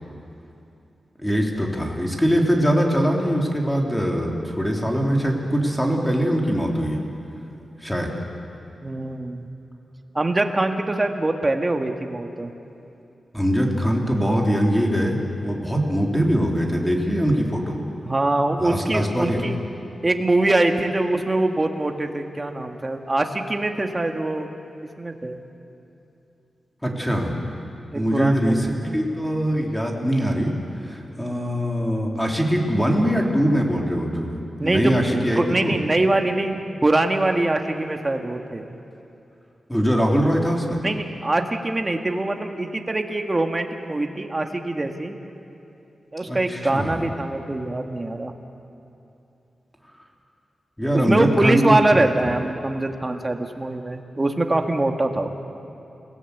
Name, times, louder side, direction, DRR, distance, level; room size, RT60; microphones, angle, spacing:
voice 1, 1.2-7.0 7.8-8.1 13.3-17.8 18.6-19.4 26.8-27.4 27.9-30.5 30.8-35.7 39.7-40.8 46.3-47.1 50.8-52.1, equal, 5° left, 0 dB, 3.2 m, -22 dB
voice 2, 8.8-9.5 10.1-12.5 18.0-19.6 20.0-24.5 25.0-25.4 27.9-29.0 34.6-34.9 35.4-38.7 40.8-45.2 46.1-48.3 50.9-55.3, right 2 dB, 25° right, 4 dB, 1.8 m, -23 dB
29.5 x 17.5 x 8.1 m, 2.8 s
wide cardioid pair, 100°, 0 cm